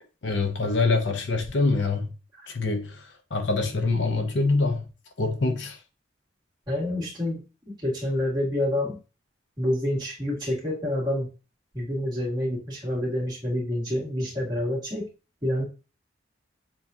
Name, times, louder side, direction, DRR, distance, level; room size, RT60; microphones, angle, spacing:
voice 1, 0.2-2.1 2.5-4.8 5.2-5.8, left 3 dB, 65° left, 0.7 m, -25 dB
voice 2, 6.7-7.4 7.7-9.0 9.6-11.3 11.7-15.1 15.4-15.6, left 1 dB, 20° right, 1.8 m, -27 dB
7.0 x 2.4 x 2.7 m
head